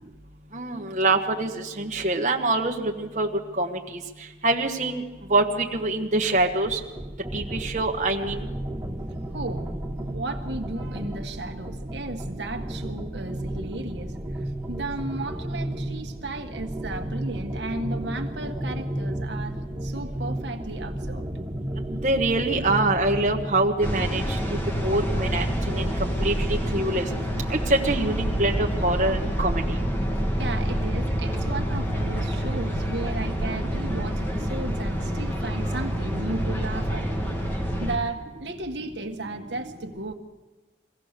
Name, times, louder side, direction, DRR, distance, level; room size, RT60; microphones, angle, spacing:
voice 1, 0.5-3.3 3.6-3.8 4.4-5.0 5.3-5.4 5.7-6.8 7.3-8.4 22.0-24.2 24.5-24.6 24.8-27.0 27.5-29.6, right 2 dB, 40° right, 1 dB, 1.4 m, -24 dB
sound 1, 6.3-23.8, right 1 dB, 15° right, 1.3 m, -33 dB
voice 2, 9.3-9.7 10.0-21.3 30.4-37.1 37.8-40.1, right 2 dB, 75° right, 4 dB, 1.6 m, -35 dB
sound 2, 23.8-38.0, equal, 10° left, 1.9 m, -27 dB
23.5 x 16.5 x 6.7 m, 1.2 s
head